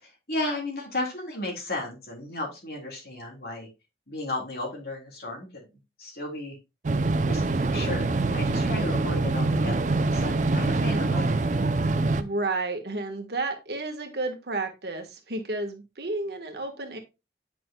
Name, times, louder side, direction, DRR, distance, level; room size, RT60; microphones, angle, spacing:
voice 1, 0.0-3.7 4.1-5.6 6.0-6.6 7.2-11.4, left 2 dB, 60° left, 0 dB, 3.4 m, -34 dB
sound 1, 6.8-12.2, right 3 dB, 45° right, 0.5 m, -24 dB
voice 2, 11.9-17.0, right 2 dB, 65° right, 5 dB, 1.5 m, -32 dB
9.1 x 6.1 x 2.3 m, 0.25 s
head